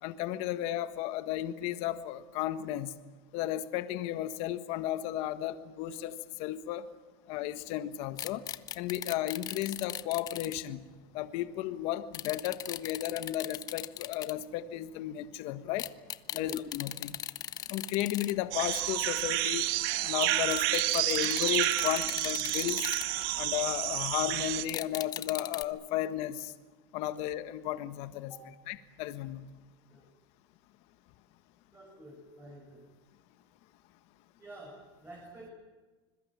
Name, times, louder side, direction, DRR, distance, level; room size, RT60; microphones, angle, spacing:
voice 1, 0.0-2.9 3.3-6.9 7.3-8.4 8.7-10.9 11.1-15.9 16.3-17.2 17.7-19.6 20.0-22.9 23.4-26.5 26.9-28.3 28.7-29.5, left 13 dB, 55° left, 11 dB, 1.5 m, -34 dB
sound 1, 8.2-10.5 12.1-14.3 15.8-18.3 18.6-18.7 20.2-20.3 20.5-23.5 24.7-25.6, left 11 dB, 30° left, 0.9 m, -39 dB
sound 2, 18.5-24.6, right 16 dB, 70° right, 1.5 m, -30 dB
voice 2, 31.7-32.9 34.4-35.5, right 1 dB, 15° right, -1 dB, 6.4 m, -49 dB
26.0 x 21.5 x 7.5 m, 1.4 s
supercardioid pair, 145°, 13 cm